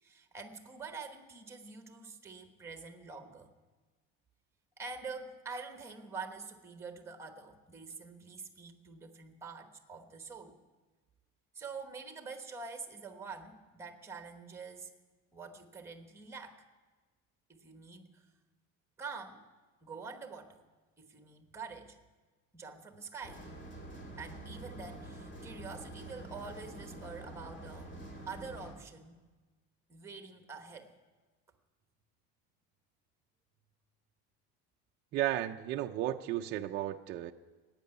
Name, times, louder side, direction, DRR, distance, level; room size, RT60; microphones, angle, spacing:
voice 1, 0.0-3.5 4.8-10.6 11.5-14.9 15.3-16.6 17.5-18.2 19.0-19.4 19.8-20.6 21.0-22.0 22.5-23.4 24.2-27.9 28.3-29.2 29.9-30.9, right 4 dB, 10° right, 6 dB, 1.1 m, -46 dB
sound 1, 23.2-28.7, right 1 dB, 25° left, 2.5 m, -47 dB
voice 2, 35.1-37.3, right 13 dB, 35° right, 4 dB, 0.4 m, -34 dB
15.5 x 8.9 x 9.7 m, 1.3 s
cardioid pair, 180°, 31 cm